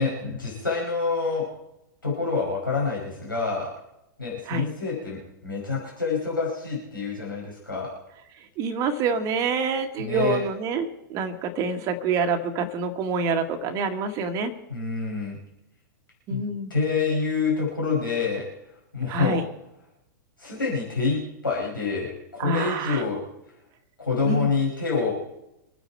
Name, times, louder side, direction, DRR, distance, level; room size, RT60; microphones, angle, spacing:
voice 1, 0.0-1.5 2.0-3.7 4.2-7.9 10.0-10.4 14.7-15.4 16.3-16.4 16.7-18.4 18.9-19.4 20.4-23.2 24.0-25.1, left 4 dB, 80° left, -4 dB, 5.6 m, -27 dB
voice 2, 8.6-14.5 16.3-16.7 19.1-19.4 22.4-23.0 24.2-24.5, right 4 dB, 30° right, 6 dB, 1.7 m, -27 dB
26.0 x 9.3 x 4.6 m, 0.86 s
figure-of-eight pair, 100°, 11 cm